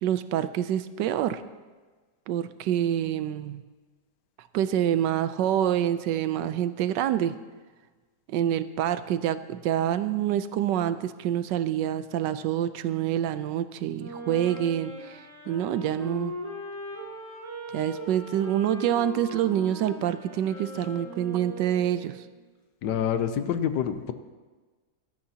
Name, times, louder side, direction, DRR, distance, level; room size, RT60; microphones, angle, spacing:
voice 1, 0.0-1.4 2.3-3.6 4.5-7.3 8.3-16.3 17.7-22.2, right 10 dB, 80° right, 12 dB, 1.2 m, -27 dB
Wind instrument woodwind instrument, 13.9-22.2, equal, 10° left, 3.8 m, -39 dB
voice 2, 22.8-24.1, left 8 dB, 75° left, 10 dB, 1.3 m, -27 dB
17.0 x 12.5 x 2.8 m, 1.3 s
omnidirectional pair, 1.9 m